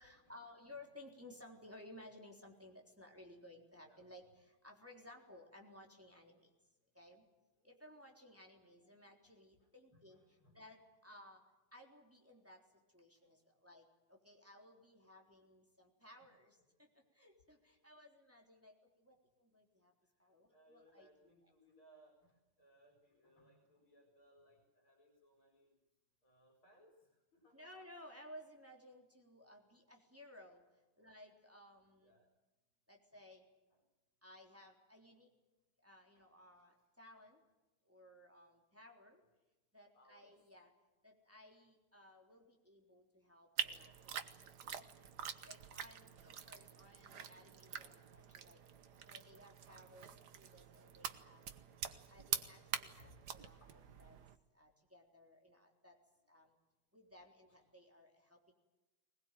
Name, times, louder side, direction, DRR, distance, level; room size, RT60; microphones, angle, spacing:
voice 1, 0.0-6.5 7.0-7.2 7.6-10.2 10.5-11.4 11.7-12.6 12.9-16.9 17.2-18.7 19.0-19.9 20.2-21.1 27.5-30.6 31.0-32.2 32.9-33.4 34.2-35.3 35.8-37.4 37.9-39.2 39.7-40.7 41.0-43.9 44.4-44.8 45.5-48.6 49.0-50.1 50.4-51.5 52.1-53.6 54.0-54.2 54.6-56.0 56.3-56.5 56.9-58.5, left 1 dB, 5° right, 1 dB, 3.5 m, -59 dB
voice 2, 9.2-10.9 12.3-12.4 13.2-13.3 16.0-16.7 20.2-25.7 26.2-27.9 31.1-31.2 32.0-32.3 33.7-33.9 36.1-36.3 36.6-36.9 39.9-40.4 41.9-42.0 46.0-46.7 52.7-53.2 53.6-53.8 54.4-54.5 57.5-57.6, equal, 75° left, 2 dB, 5.2 m, -69 dB
sound 1, 43.6-54.4, right 8 dB, 55° right, 1.6 m, -46 dB
22.0 x 21.0 x 9.1 m, 1.1 s
omnidirectional pair, 2.3 m